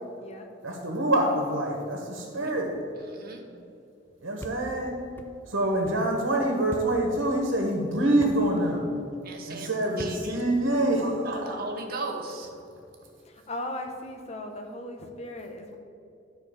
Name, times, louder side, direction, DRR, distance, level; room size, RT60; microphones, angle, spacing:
voice 1, 0.6-2.7 4.2-4.9 5.5-8.9 9.5-11.5, right 1 dB, 80° right, 1 dB, 1.5 m, -26 dB
voice 2, 3.1-3.4 9.2-9.7 10.0-10.4 11.0-12.5, right 3 dB, 50° right, 1 dB, 1.4 m, -37 dB
sound 1, 4.4-4.6 5.2-5.3 5.8-6.0 6.7-6.9 8.2-8.4 10.0-10.2, left 1 dB, 10° left, 0.6 m, -40 dB
voice 3, 13.2-15.8, left 1 dB, 35° left, 3 dB, 1.0 m, -37 dB
12.5 x 4.4 x 7.2 m, 2.6 s
head